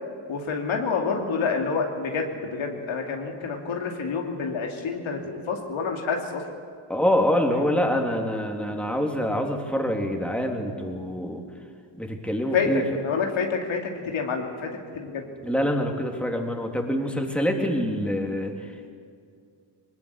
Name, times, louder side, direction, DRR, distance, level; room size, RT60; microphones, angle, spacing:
voice 1, 0.3-6.4 12.5-15.3, left 5 dB, 80° left, 2 dB, 2.8 m, -28 dB
voice 2, 6.9-11.4 12.0-12.8 15.4-18.9, equal, ahead, 2 dB, 3.2 m, -25 dB
20.5 x 19.5 x 8.5 m, 2.3 s
cardioid pair, 65°, 47 cm